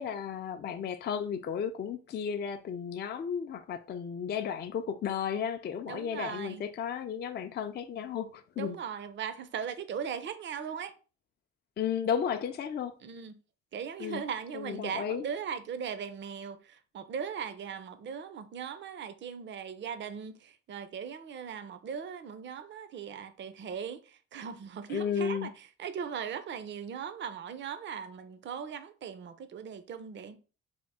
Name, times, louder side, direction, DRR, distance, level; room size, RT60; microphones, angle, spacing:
voice 1, 0.0-8.8 11.8-12.9 14.0-14.2 14.5-15.2 24.9-25.5, left 7 dB, 35° left, 0.4 m, -33 dB
voice 2, 5.9-6.6 8.6-10.9 13.0-13.4 13.7-30.4, right 7 dB, 40° right, 0.5 m, -39 dB
3.4 x 2.1 x 4.0 m
cardioid pair, 90°, 30 cm